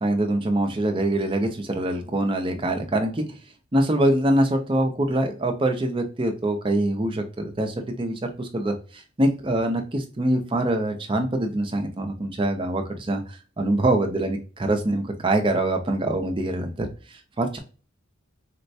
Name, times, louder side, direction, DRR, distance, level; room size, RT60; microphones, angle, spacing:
voice 1, 0.0-3.2 3.7-17.6, right 1 dB, 25° right, 4 dB, 0.5 m, -24 dB
4.3 x 2.1 x 2.6 m, 0.35 s
head